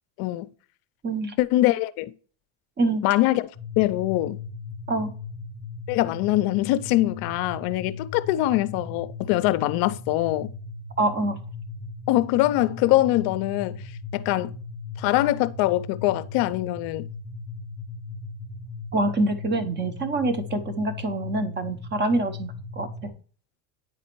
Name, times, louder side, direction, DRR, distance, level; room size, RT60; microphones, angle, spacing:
voice 1, 0.2-0.5 1.4-2.1 3.0-3.5 3.8-4.4 5.9-10.5 12.1-13.8 14.1-14.6 15.0-17.1, left 16 dB, 55° left, 0.5 m, -23 dB
voice 2, 1.0-1.3 2.8-3.0 4.9-5.1 11.0-11.4 18.9-23.1, right 2 dB, 25° right, 0.8 m, -26 dB
sound 1, 3.5-23.1, left 3 dB, 85° right, 2.2 m, -38 dB
9.3 x 4.1 x 3.0 m
supercardioid pair, 105°, 43 cm